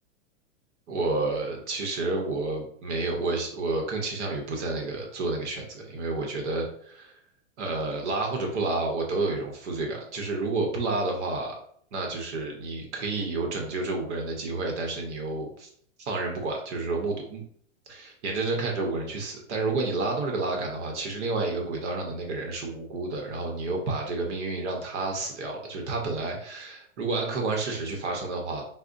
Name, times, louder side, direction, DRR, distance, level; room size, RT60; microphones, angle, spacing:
voice 1, 0.9-7.1 7.6-11.6 11.9-15.7 16.0-17.4 17.9-28.6, right 3 dB, 65° right, 1 dB, 0.8 m, -30 dB
4.6 x 2.1 x 2.5 m, 0.63 s
supercardioid pair, 170°, 38 cm